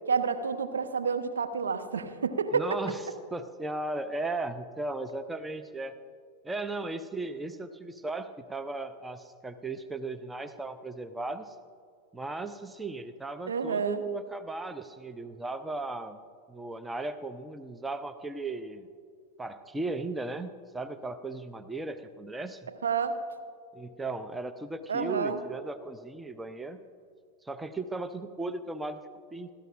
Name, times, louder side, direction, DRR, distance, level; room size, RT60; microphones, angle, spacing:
voice 1, 0.1-2.6 13.5-14.0 22.8-23.1 24.9-25.4, right 5 dB, 70° right, 7 dB, 0.9 m, -29 dB
voice 2, 2.5-3.0 3.3-5.9 6.4-11.6 12.1-16.2 16.5-18.9 19.4-22.7 23.7-26.8 27.4-29.0 29.3-29.5, right 2 dB, 10° right, 10 dB, 0.6 m, -36 dB
28.5 x 13.0 x 2.5 m, 2.2 s
figure-of-eight pair, 90°, 0 cm